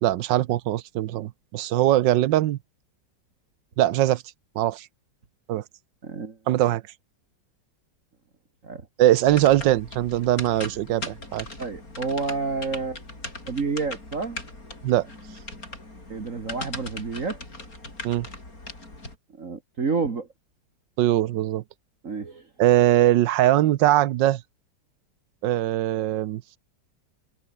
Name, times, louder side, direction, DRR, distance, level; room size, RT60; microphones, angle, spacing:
voice 1, 0.0-2.6 3.8-4.2 4.6-4.9 5.5-5.6 6.5-6.8 9.0-11.5 14.8-15.1 18.0-18.3 21.0-21.6 22.6-24.4 25.4-26.4, right 14 dB, 85° right, 1.4 m, -21 dB
voice 2, 6.0-6.4 8.6-8.8 11.6-13.0 13.5-14.4 16.1-17.4 19.4-20.3 22.0-22.4, right 4 dB, 45° right, 2.2 m, -29 dB
sound 1, 9.2-19.2, left 2 dB, 50° left, 6.6 m, -39 dB
omnidirectional pair, 2.0 m